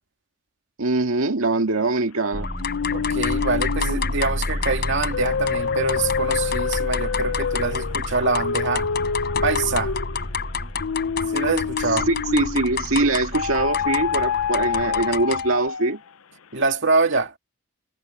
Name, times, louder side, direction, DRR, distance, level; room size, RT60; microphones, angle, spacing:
voice 1, 0.8-2.5 12.1-16.0, right 2 dB, 90° right, 1.9 m, -22 dB
sound 1, 2.3-15.1, equal, 10° left, 0.9 m, -33 dB
sound 2, 2.4-15.6, left 5 dB, 50° left, 3.9 m, -30 dB
sound 3, 2.6-12.8 13.3-16.1, left 6 dB, 75° left, 0.6 m, -27 dB
voice 2, 2.9-8.9 9.4-10.0 11.3-12.1 16.5-17.3, right 3 dB, 60° right, 2.5 m, -24 dB
head